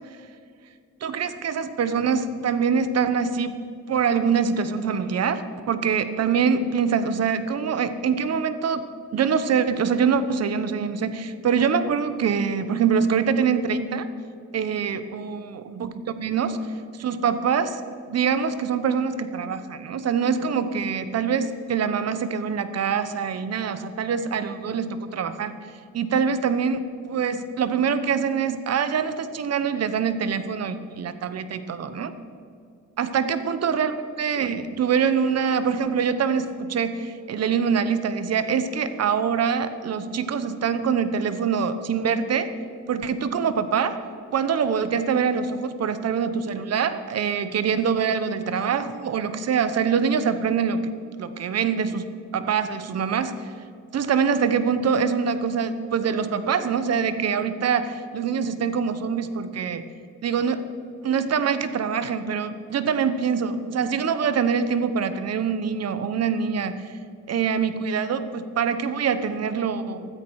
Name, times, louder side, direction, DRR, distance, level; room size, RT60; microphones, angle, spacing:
voice 1, 1.0-3.6 3.9-8.8 9.1-14.1 14.5-17.8 18.1-25.6 25.9-32.1 33.0-42.5 42.9-44.0 44.3-50.9 51.2-53.5 53.9-59.8 60.2-60.7 61.0-66.9 67.3-70.1, right 6 dB, 55° right, 12 dB, 1.1 m, -24 dB
15.0 x 13.5 x 4.8 m, 2.3 s
cardioid pair, 90°, 30 cm